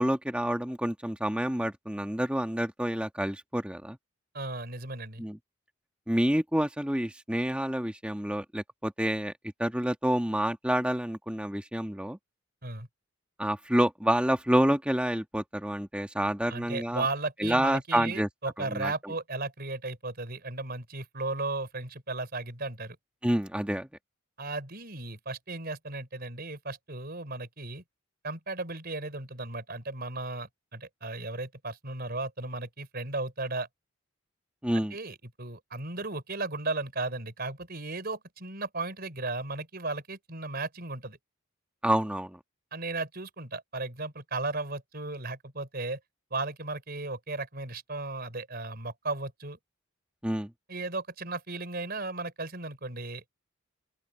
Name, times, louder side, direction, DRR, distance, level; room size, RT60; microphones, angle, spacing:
voice 1, 0.0-4.0 5.2-5.4 6.1-12.2 13.4-17.0 17.4-18.3 18.6-18.9 23.2-23.9 34.6-34.9 41.8-42.4 50.2-50.5, equal, 5° right, 1.4 m, -28 dB
voice 2, 4.3-5.2 12.6-12.9 16.5-23.0 24.4-27.8 28.2-33.7 34.9-41.2 42.7-46.0 46.3-49.6 50.7-53.3, right 3 dB, 50° right, 4.6 m, -35 dB
open air
head